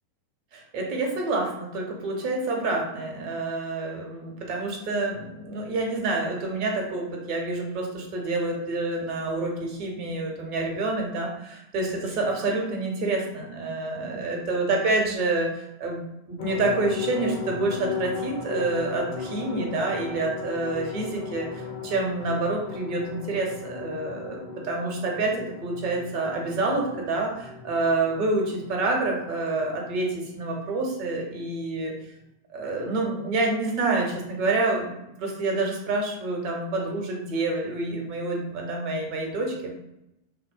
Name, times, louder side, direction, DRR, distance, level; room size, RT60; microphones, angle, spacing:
voice 1, 0.5-31.9 32.5-39.7, right 2 dB, 40° right, 0 dB, 0.7 m, -28 dB
sound 1, 16.4-30.5 30.8-30.9 31.2-31.3, left 6 dB, 60° left, 0.5 m, -37 dB
2.9 x 2.1 x 2.5 m, 0.88 s
figure-of-eight pair, 90°, 0 cm